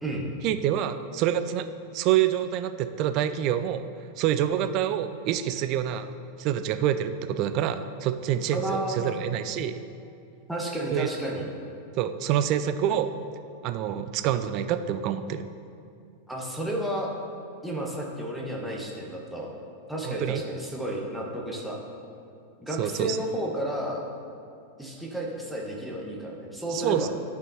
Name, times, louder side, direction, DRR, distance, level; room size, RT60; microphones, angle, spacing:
voice 1, 0.4-1.7 1.9-3.8 4.2-6.1 6.4-9.7 10.9-11.1 12.0-13.1 13.6-15.5 20.0-20.4 22.8-23.2 26.7-27.1, right 10 dB, 40° right, 9 dB, 0.3 m, -26 dB
voice 2, 8.5-9.2 10.5-11.4 16.3-17.1 17.6-19.5 19.9-21.8 22.6-24.0 24.8-27.1, right 1 dB, ahead, -3 dB, 1.1 m, -32 dB
11.5 x 4.4 x 2.7 m, 2.5 s
figure-of-eight pair, 90°, 0 cm